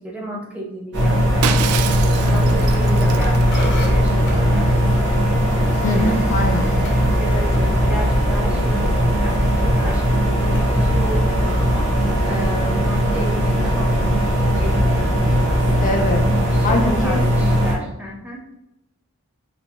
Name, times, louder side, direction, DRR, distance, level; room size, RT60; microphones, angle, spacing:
voice 1, 0.0-1.7 2.2-5.3 5.9-6.7 7.2-9.4 9.7-11.9 12.2-16.1 16.4-18.4, right 1 dB, 5° right, -2 dB, 0.7 m, -33 dB
sound 1, 0.9-17.7, equal, 55° right, 1.3 m, -18 dB
Shatter, 1.4-4.1, right 8 dB, 80° right, 0.3 m, -28 dB
sound 2, 1.7-12.5, equal, 55° left, 0.8 m, -33 dB
voice 2, 2.3-2.6 5.8-6.7 15.8-16.3 16.6-17.2, left 2 dB, 35° left, 2 dB, 0.4 m, -23 dB
4.1 x 2.9 x 2.8 m, 0.90 s
head